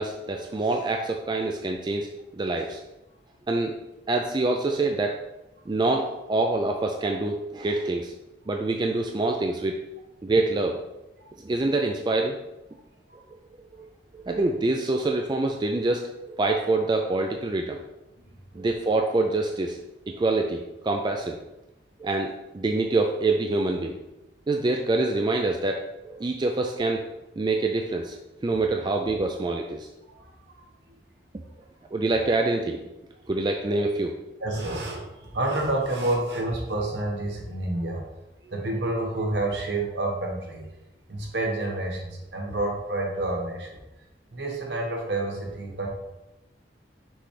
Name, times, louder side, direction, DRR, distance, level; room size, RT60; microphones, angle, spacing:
voice 1, 0.0-2.1 2.3-2.8 3.5-3.7 4.1-5.2 5.7-8.1 8.5-9.8 10.2-10.8 11.4-12.4 13.8-13.9 14.1-17.8 18.5-19.8 20.1-21.4 22.0-24.0 24.5-27.0 27.4-28.2 28.4-29.9 31.9-32.8 33.3-34.1, right 2 dB, 25° right, 3 dB, 0.4 m, -25 dB
voice 2, 34.4-38.0 38.4-40.6 41.1-43.8 44.3-45.9, right 2 dB, 65° right, 0 dB, 1.3 m, -29 dB
6.1 x 4.9 x 3.3 m, 0.98 s
head